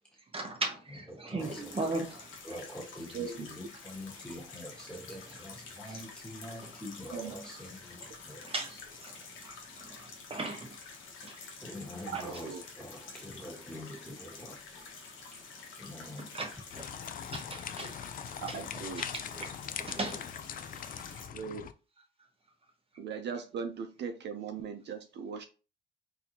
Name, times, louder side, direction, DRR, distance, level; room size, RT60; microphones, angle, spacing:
voice 1, 0.3-2.3 6.5-6.7 7.3-7.4 8.0-8.1 8.4-9.2 9.4-10.8 11.2-11.3 12.1-12.3 16.2-16.9 17.3-17.9 18.3-18.6 19.0-19.5 19.8-20.2, right 2 dB, 30° right, 1.0 m, -38 dB
voice 2, 1.1-1.8 2.4-8.5 11.6-14.9 15.8-16.4, left 1 dB, 5° left, 1.5 m, -45 dB
sound 1, 1.4-21.3, left 4 dB, 85° left, 1.1 m, -49 dB
voice 3, 12.2-12.6 18.5-19.0 21.3-21.6 23.0-25.4, right 6 dB, 60° right, 0.6 m, -39 dB
sound 2, 16.7-21.7, left 8 dB, 45° left, 0.4 m, -41 dB
4.0 x 2.7 x 2.8 m
cardioid pair, 90°, 20 cm